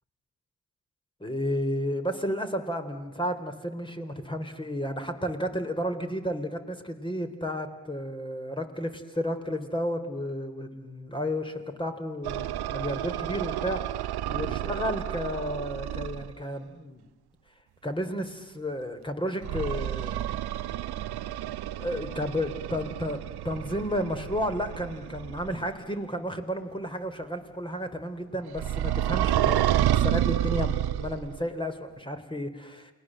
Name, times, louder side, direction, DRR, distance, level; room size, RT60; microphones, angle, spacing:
voice 1, 1.2-13.8 14.3-17.1 17.8-20.2 21.8-23.2 23.4-32.9, equal, 15° left, 7 dB, 3.8 m, -32 dB
sound 1, 12.2-16.3 19.4-25.7 28.6-31.4, right 12 dB, 75° right, 0.9 m, -30 dB
28.5 x 20.5 x 7.7 m, 1.1 s
supercardioid pair, 55°, 39 cm